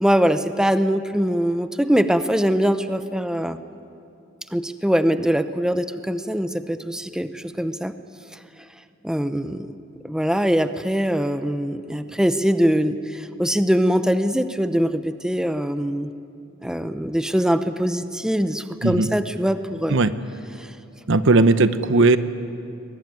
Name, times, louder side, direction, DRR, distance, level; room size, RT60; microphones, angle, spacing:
voice 1, 0.0-3.6 4.5-7.9 9.0-9.7 10.0-16.1 16.6-20.0 20.6-20.7, equal, 5° right, 10 dB, 0.6 m, -22 dB
voice 2, 21.1-22.2, right 3 dB, 65° right, 12 dB, 0.9 m, -17 dB
21.5 x 21.5 x 9.3 m, 2.6 s
head